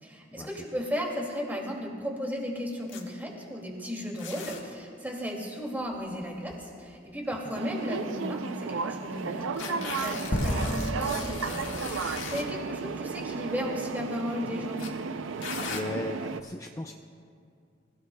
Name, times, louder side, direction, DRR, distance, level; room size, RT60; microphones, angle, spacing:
voice 1, 0.0-14.8, equal, 10° right, -1 dB, 2.4 m, -35 dB
sound 1, 2.9-3.0 4.2-4.6 5.8-6.8 7.5-7.6 8.0-8.1 9.5-12.5 13.4-13.7 14.8-14.9 15.4-15.8, left 5 dB, 80° left, 1.7 m, -38 dB
sound 2, 7.5-16.4, right 5 dB, 85° right, 0.5 m, -34 dB
sound 3, 10.3-12.7, equal, 40° left, 1.1 m, -32 dB
voice 2, 15.7-16.9, left 1 dB, 15° left, 3 dB, 0.4 m, -36 dB
27.0 x 16.5 x 2.3 m, 2.4 s
head